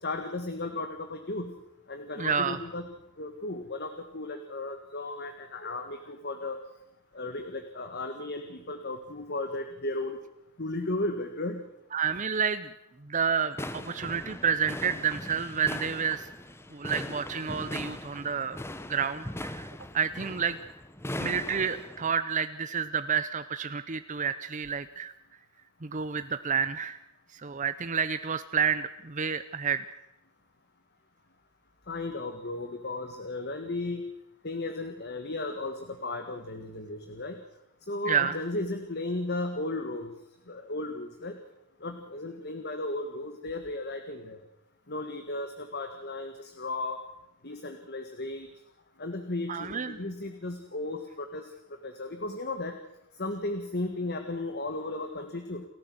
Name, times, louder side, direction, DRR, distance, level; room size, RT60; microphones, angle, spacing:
voice 1, 0.0-1.5 1.9-2.9 3.2-6.6 7.1-10.2 10.6-11.6 31.9-34.0 34.4-37.4 37.9-40.1 40.5-41.4 41.8-44.4 44.9-47.0 47.4-48.5 49.0-51.5 51.8-52.7 53.2-55.7, left 2 dB, 50° left, 7 dB, 1.8 m, -35 dB
voice 2, 2.2-2.6 11.9-12.7 13.0-16.3 16.7-18.6 18.9-20.6 21.2-25.1 25.8-27.0 27.3-29.8 38.1-38.4 49.5-50.0, right 7 dB, 35° right, 12 dB, 0.7 m, -29 dB
sound 1, 13.5-22.1, left 1 dB, 10° left, 1.1 m, -40 dB
29.0 x 14.0 x 7.9 m, 0.85 s
head